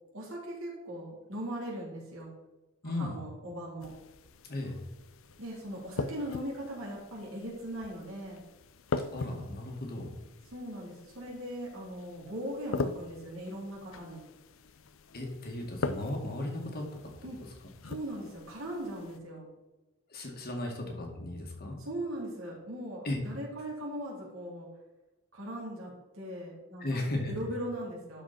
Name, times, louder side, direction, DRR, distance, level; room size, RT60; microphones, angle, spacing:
voice 1, 0.1-2.3 2.8-3.9 5.4-8.4 10.5-14.2 17.2-17.4 17.8-19.5 21.8-24.7 25.3-28.2, right 1 dB, 70° right, -4 dB, 3.6 m, -39 dB
voice 2, 2.8-3.2 4.5-4.8 9.1-10.1 15.1-16.9 20.1-21.8 23.0-23.2 26.8-27.3, left 2 dB, 45° left, 1 dB, 2.1 m, -35 dB
sound 1, 3.8-19.2, left 3 dB, 65° left, 0.6 m, -41 dB
12.0 x 5.2 x 4.4 m, 1.1 s
head